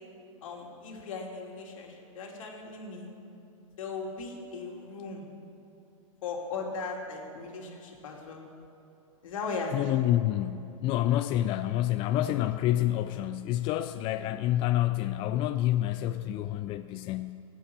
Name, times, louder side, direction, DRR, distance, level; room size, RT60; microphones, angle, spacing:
voice 1, 0.4-3.1 3.8-5.3 6.2-8.4 9.2-10.0, left 4 dB, 70° left, 0 dB, 2.7 m, -38 dB
voice 2, 9.7-17.4, left 13 dB, 30° left, 10 dB, 0.4 m, -28 dB
14.0 x 9.0 x 7.1 m, 2.7 s
hypercardioid pair, 115°, 18 cm